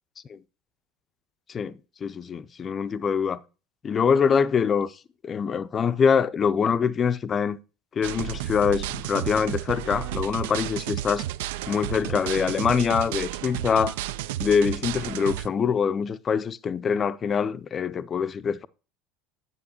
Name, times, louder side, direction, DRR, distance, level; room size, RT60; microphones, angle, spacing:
voice 1, 1.5-3.4 3.8-5.0 5.2-7.6 7.9-11.3 11.7-14.0 14.4-18.7, left 6 dB, 35° left, 0.5 m, -24 dB
sound 1, 8.0-15.5, right 14 dB, 70° right, 0.3 m, -32 dB
9.7 x 7.6 x 2.8 m
hypercardioid pair, 75°, 0 cm